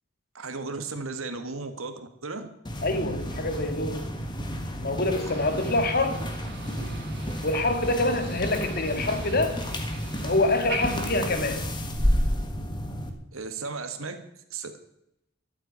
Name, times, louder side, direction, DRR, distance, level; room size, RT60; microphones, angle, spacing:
voice 1, 0.4-2.5 13.3-14.7, right 4 dB, 85° right, 8 dB, 1.8 m, -35 dB
sound 1, 2.6-13.1, equal, 20° left, 1.6 m, -31 dB
voice 2, 2.8-4.1 4.8-6.2 7.4-9.6 10.2-11.7, left 2 dB, 50° left, 7 dB, 1.8 m, -26 dB
Motor vehicle (road), 5.2-11.2, right 5 dB, 55° right, 1.9 m, -42 dB
13.0 x 8.1 x 8.9 m, 0.78 s
head